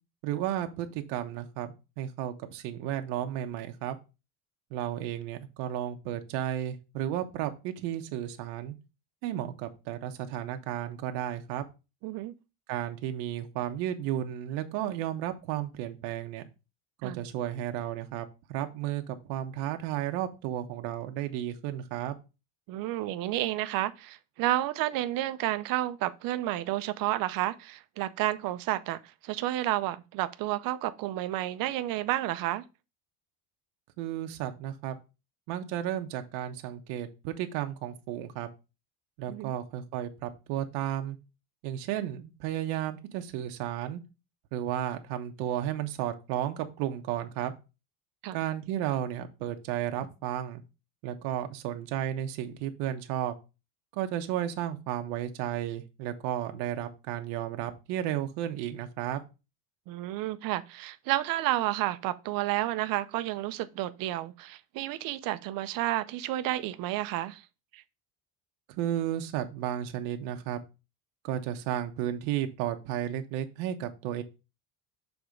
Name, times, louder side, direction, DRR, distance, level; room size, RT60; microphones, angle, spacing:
voice 1, 0.2-4.0 4.7-8.7 9.2-11.6 12.7-16.4 17.0-22.1 34.0-35.0 35.5-38.5 39.2-41.2 41.6-44.0 44.5-47.5 48.3-50.6 51.0-53.3 53.9-59.2 68.8-70.6 71.2-74.2, right 11 dB, 90° right, 1.1 m, -33 dB
voice 2, 12.0-12.3 17.0-17.2 22.7-32.6 39.3-39.5 48.2-48.4 59.9-67.4 67.7-67.8, right 15 dB, 55° right, 0.6 m, -31 dB
6.9 x 3.6 x 5.1 m
cardioid pair, 170°, 42 cm